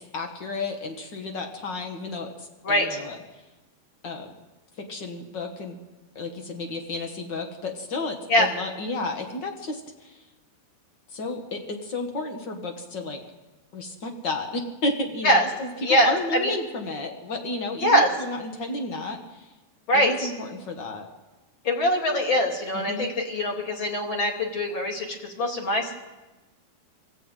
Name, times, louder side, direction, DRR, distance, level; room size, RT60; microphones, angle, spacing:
voice 1, 0.0-3.2 4.0-4.3 4.8-5.8 6.1-10.2 11.1-13.2 13.7-19.5 19.9-21.1 22.7-23.1, left 2 dB, 85° left, 4 dB, 0.9 m, -32 dB
voice 2, 15.8-16.1 16.4-16.5 17.8-18.1 19.9-20.3 21.6-25.9, equal, 30° left, 2 dB, 2.9 m, -22 dB
25.5 x 15.0 x 9.1 m, 1.1 s
omnidirectional pair, 5.1 m